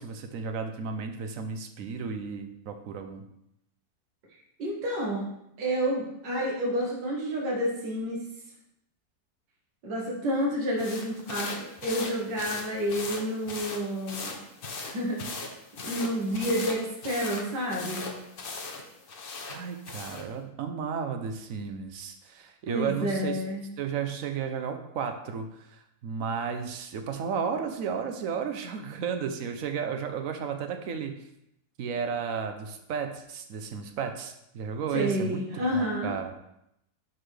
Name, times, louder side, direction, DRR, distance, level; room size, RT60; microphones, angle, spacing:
voice 1, 0.0-3.2 19.4-23.4 23.8-31.2 31.8-36.3, right 6 dB, 60° right, 6 dB, 1.0 m, -33 dB
voice 2, 4.6-5.3 5.6-8.2 9.8-14.4 14.8-15.5 15.8-18.1 22.7-23.7 34.9-36.1, equal, 75° right, -3 dB, 2.2 m, -29 dB
sound 1, 10.8-20.3, left 3 dB, 50° left, 0.7 m, -39 dB
11.5 x 4.1 x 3.3 m, 0.79 s
omnidirectional pair, 1.9 m